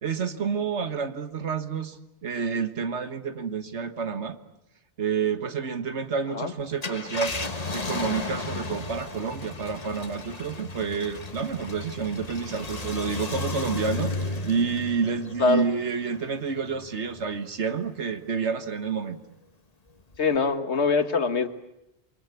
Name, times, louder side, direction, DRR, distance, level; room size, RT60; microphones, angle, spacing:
voice 1, 0.0-4.4 5.0-7.4 7.7-19.2, right 6 dB, 80° right, 10 dB, 1.8 m, -29 dB
Car, 6.7-17.5 18.0-18.1 20.1-20.4, left 3 dB, 35° left, 1.6 m, -34 dB
voice 2, 20.2-21.5, left 4 dB, 75° left, 9 dB, 1.9 m, -23 dB
29.0 x 24.0 x 8.4 m, 0.85 s
omnidirectional pair, 1.1 m